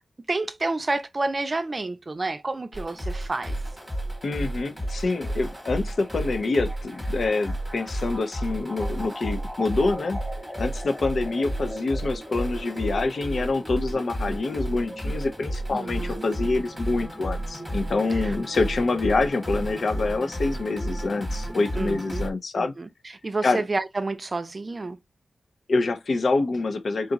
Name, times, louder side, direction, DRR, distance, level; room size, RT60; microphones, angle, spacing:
voice 1, 0.3-3.6 15.7-16.2 18.1-18.4 21.7-22.2 22.5-22.9 23.2-25.0, right 2 dB, 30° right, 0.5 m, -29 dB
sound 1, 2.7-22.3, right 1 dB, 5° left, 1.2 m, -32 dB
voice 2, 4.2-10.2 10.6-22.7 23.4-23.6 25.7-27.1, left 3 dB, 55° left, 0.6 m, -26 dB
3.8 x 2.4 x 3.9 m
wide cardioid pair, 125°, 0 cm